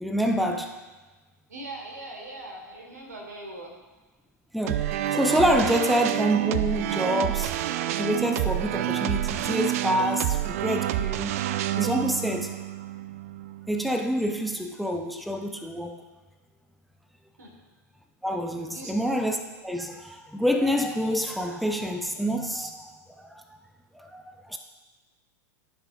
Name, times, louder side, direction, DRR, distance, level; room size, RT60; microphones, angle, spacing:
voice 1, 0.0-0.7 4.5-7.6 8.0-11.3 11.8-12.6 13.7-16.0 18.2-19.4 19.6-22.9 23.2-23.4 23.9-24.6, equal, ahead, 4 dB, 0.6 m, -27 dB
voice 2, 1.5-3.8 17.4-17.5 18.7-18.9, right 2 dB, 80° right, 0 dB, 1.9 m, -40 dB
sound 1, 4.7-13.8, right 13 dB, 60° right, 0.4 m, -28 dB
13.0 x 5.4 x 2.6 m, 1.2 s
figure-of-eight pair, 90°, 9 cm